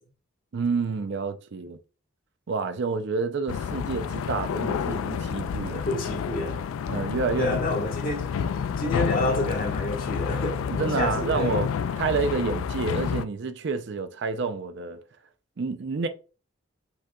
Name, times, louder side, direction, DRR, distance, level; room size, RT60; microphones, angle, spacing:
voice 1, 0.5-1.8 2.5-5.8 6.9-7.6 8.4-8.5 10.7-11.7 12.0-15.0 15.6-16.1, right 4 dB, 55° right, 0.4 m, -29 dB
sound 1, 3.5-13.2, left 7 dB, 80° left, 0.3 m, -29 dB
voice 2, 5.7-6.6 7.4-8.3 8.8-11.6, left 1 dB, 45° left, 1.5 m, -29 dB
5.4 x 3.8 x 2.3 m
head